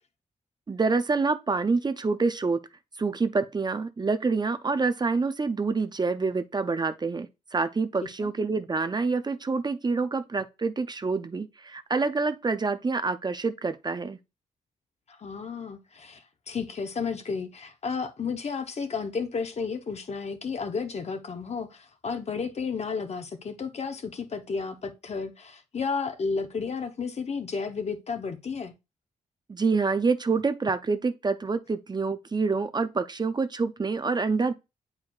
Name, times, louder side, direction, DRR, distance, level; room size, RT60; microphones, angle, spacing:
voice 1, 0.7-2.6 3.0-14.2 29.5-34.5, right 4 dB, 30° right, 0.6 m, -27 dB
voice 2, 15.1-28.7, left 5 dB, 50° left, 0.9 m, -32 dB
8.1 x 4.8 x 2.4 m
cardioid pair, 65°, 14 cm